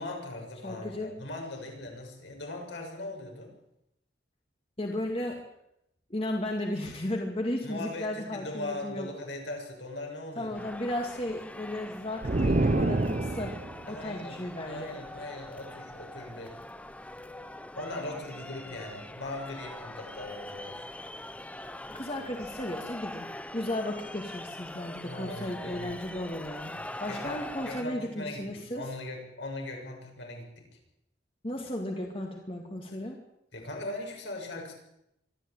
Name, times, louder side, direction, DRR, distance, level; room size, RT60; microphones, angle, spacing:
voice 1, 0.0-3.5 7.6-10.6 13.9-14.4 14.6-16.6 17.7-20.8 25.0-25.9 26.7-30.7 33.5-34.7, left 2 dB, 75° left, 1 dB, 6.9 m, -40 dB
voice 2, 0.6-1.1 4.8-5.4 6.1-9.1 10.4-13.6 13.9-15.0 21.9-28.9 31.4-33.2, left 1 dB, 30° left, 1 dB, 2.3 m, -35 dB
sound 1, 10.5-27.8, left 1 dB, 5° left, 0.7 m, -43 dB
sound 2, 12.2-13.9, right 2 dB, 40° right, 0.7 m, -26 dB
24.5 x 13.5 x 8.9 m, 0.81 s
head